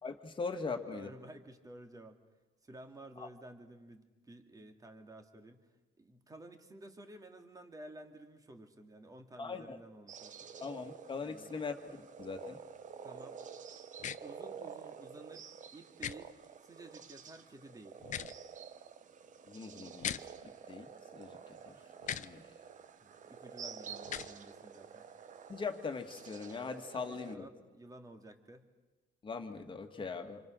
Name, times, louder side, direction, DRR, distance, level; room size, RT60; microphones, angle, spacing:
voice 1, 0.0-1.1 3.2-3.3 9.4-9.8 10.6-12.6 19.5-21.8 22.1-22.5 25.5-27.5 29.2-30.4, left 4 dB, 30° left, 6 dB, 2.1 m, -41 dB
voice 2, 0.9-2.2 2.6-5.7 6.0-10.5 11.2-11.6 13.0-13.4 14.2-18.0 23.0-25.1 26.9-28.7, right 1 dB, 20° right, 5 dB, 2.6 m, -53 dB
sound 1, 10.1-27.4, right 7 dB, 50° right, 1.2 m, -50 dB
sound 2, 14.0-14.2 16.0-16.1 18.0-18.3 20.0-20.2 22.0-22.3 24.0-24.3, left 9 dB, 45° left, 0.8 m, -38 dB
28.0 x 25.5 x 6.5 m, 1.2 s
cardioid pair, 110°, 17 cm